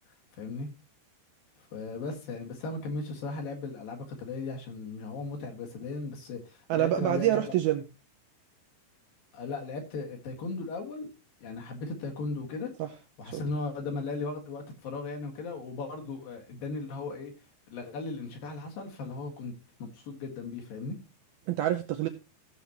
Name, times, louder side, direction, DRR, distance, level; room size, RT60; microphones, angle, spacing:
voice 1, 0.3-0.7 1.6-7.4 9.3-11.1 11.4-12.7 13.2-17.3 17.7-19.5 19.8-21.0, left 3 dB, 60° left, 2 dB, 3.3 m, -37 dB
voice 2, 6.7-7.8 12.8-12.9 13.3-13.4 21.5-22.1, right 13 dB, 80° right, 6 dB, 2.2 m, -26 dB
16.0 x 7.2 x 3.0 m, 0.29 s
omnidirectional pair, 5.1 m